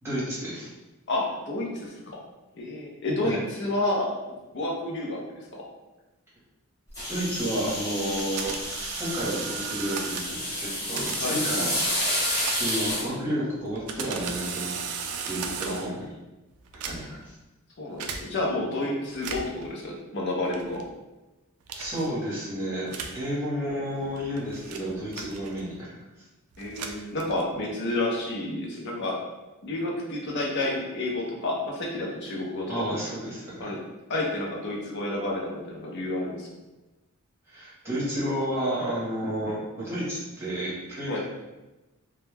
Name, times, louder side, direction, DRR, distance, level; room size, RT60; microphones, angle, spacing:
voice 1, 0.0-0.7 3.2-3.4 7.1-8.5 9.0-11.7 12.1-12.2 12.5-14.8 15.3-16.0 16.9-17.3 21.7-25.9 32.7-33.7 37.5-41.2, equal, 10° right, -10 dB, 1.0 m, -31 dB
voice 2, 1.1-2.2 2.6-4.1 4.5-5.6 11.2-11.4 15.6-16.0 17.8-20.8 26.6-29.2 29.6-33.0 33.6-33.8 34.1-36.5 41.0-41.2, left 2 dB, 50° left, -2 dB, 0.6 m, -30 dB
sound 1, 6.9-13.0, left 1 dB, 15° left, 0.9 m, -30 dB
sound 2, 8.2-10.4 11.0-13.1 13.6-16.0 16.6-17.3 18.0-18.2 19.1-19.6 20.5-20.9 21.7-22.1 22.9-23.2 24.0-25.8 26.5-27.6, right 6 dB, 85° right, 0.3 m, -36 dB
2.2 x 2.1 x 3.2 m, 1.1 s
head